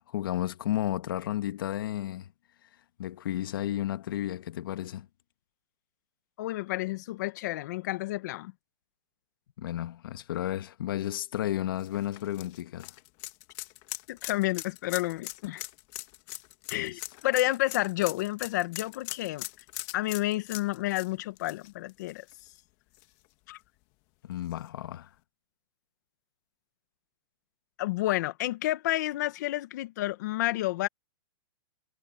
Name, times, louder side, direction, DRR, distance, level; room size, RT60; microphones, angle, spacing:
voice 1, 0.0-2.3 3.0-5.1 9.6-12.9 16.7-17.0 24.2-25.1, left 12 dB, 60° left, 1.5 m, -33 dB
voice 2, 6.4-8.5 14.1-15.6 16.7-19.4 19.9-22.2 23.5-23.6 27.8-30.9, left 17 dB, 45° left, 1.7 m, -30 dB
sound 1, 11.8-22.6 22.9-23.0 24.5-24.6, left 21 dB, 30° left, 1.7 m, -41 dB
hypercardioid pair, 165°, 13 cm